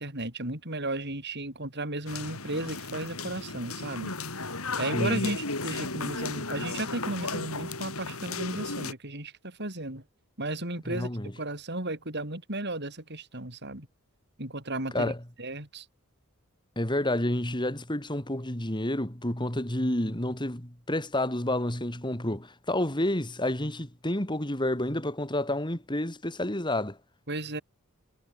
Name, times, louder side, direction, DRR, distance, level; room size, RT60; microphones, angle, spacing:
voice 1, 0.0-4.1 4.8-10.0 10.4-11.1 11.4-13.9 14.4-15.1 15.4-15.8 27.3-27.6, right 2 dB, 50° right, 6.6 m, -34 dB
sound 1, 2.1-8.9, left 3 dB, 85° left, 6.9 m, -34 dB
voice 2, 4.9-5.2 10.9-11.3 14.9-15.2 16.8-27.0, left 1 dB, 20° left, 3.2 m, -29 dB
head